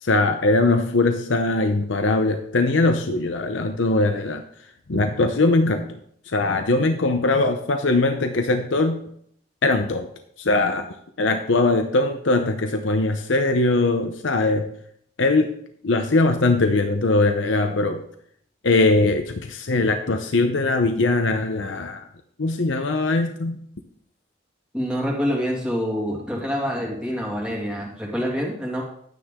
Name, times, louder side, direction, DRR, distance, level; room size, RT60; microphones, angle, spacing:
voice 1, 0.0-4.4 4.9-6.0 6.3-9.0 9.6-10.1 10.4-14.7 15.2-15.6 15.8-18.0 18.6-22.1 22.4-23.6, left 2 dB, 85° left, 6 dB, 0.8 m, -21 dB
voice 2, 24.7-28.8, equal, 5° right, -2 dB, 2.2 m, -26 dB
12.0 x 9.2 x 3.7 m, 0.67 s
head